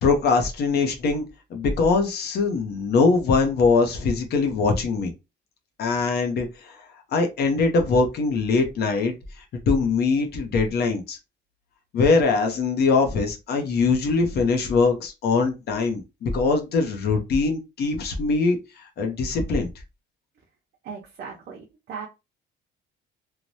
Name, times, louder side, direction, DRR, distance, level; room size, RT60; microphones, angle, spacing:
voice 1, 0.0-1.2 1.5-5.1 5.8-6.9 7.1-11.2 11.9-19.7, left 4 dB, 55° left, 0.7 m, -22 dB
voice 2, 20.8-22.1, right 6 dB, 55° right, 0.7 m, -37 dB
3.1 x 2.1 x 2.6 m
cardioid pair, 160°, 20 cm